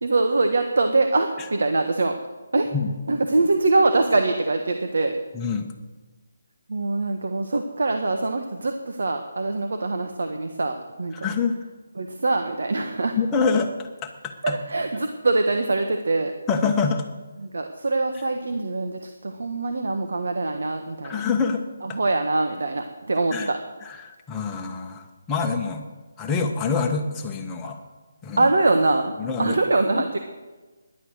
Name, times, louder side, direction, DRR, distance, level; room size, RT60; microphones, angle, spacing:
voice 1, 0.0-2.1 2.5-2.7 3.1-5.2 6.7-11.1 12.0-13.2 14.4-16.3 17.4-21.2 21.8-23.6 28.4-29.1 29.4-30.2, right 2 dB, 75° right, 5 dB, 1.4 m, -23 dB
voice 2, 5.3-5.7 11.1-11.6 13.2-14.5 16.5-17.0 21.0-21.6 23.3-23.5 23.8-25.9 26.2-27.8 28.2-28.5 29.2-29.6, left 5 dB, 10° left, 2 dB, 1.3 m, -26 dB
17.5 x 11.0 x 6.5 m, 1.3 s
hypercardioid pair, 165°, 0 cm